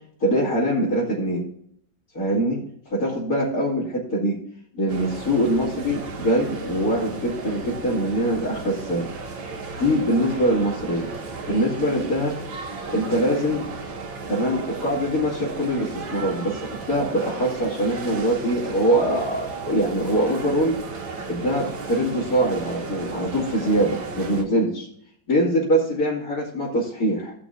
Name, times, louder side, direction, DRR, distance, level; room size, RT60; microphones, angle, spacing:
voice 1, 0.2-1.4 2.1-2.6 2.9-4.4 4.7-9.1 9.4-9.5 9.8-11.1 11.5-12.4 12.9-13.6 14.3-20.8 21.3-24.9 25.3-27.3, right 1 dB, 45° left, -9 dB, 3.2 m, -23 dB
sound 1, 4.9-24.4, right 4 dB, 70° right, 2.2 m, -34 dB
17.5 x 5.9 x 2.7 m, 0.67 s
omnidirectional pair, 2.2 m